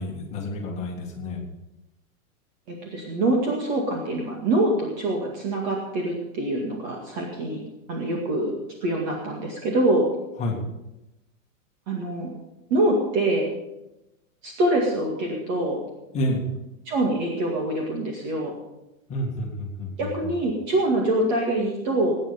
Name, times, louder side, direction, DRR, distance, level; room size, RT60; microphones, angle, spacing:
voice 1, 0.0-1.4 10.4-10.6 16.1-16.4 19.1-20.3, left 1 dB, 15° left, -1 dB, 2.1 m, -29 dB
voice 2, 2.7-7.6 7.9-8.5 8.8-10.1 11.9-12.3 12.7-13.5 14.4-15.8 16.9-18.5 20.0-22.2, right 1 dB, 35° right, -1 dB, 2.3 m, -24 dB
18.5 x 9.8 x 5.2 m, 0.95 s
supercardioid pair, 175°, 40 cm